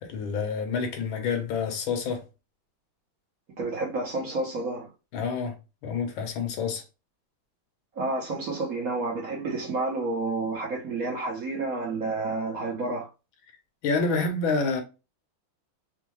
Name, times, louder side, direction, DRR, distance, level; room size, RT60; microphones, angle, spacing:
voice 1, 0.0-2.2 5.1-5.5 5.8-6.8 13.8-14.8, left 4 dB, 80° left, 1.6 m, -28 dB
voice 2, 3.6-4.9 8.0-13.1, right 3 dB, 55° right, 1.1 m, -30 dB
4.4 x 2.2 x 3.0 m
omnidirectional pair, 2.2 m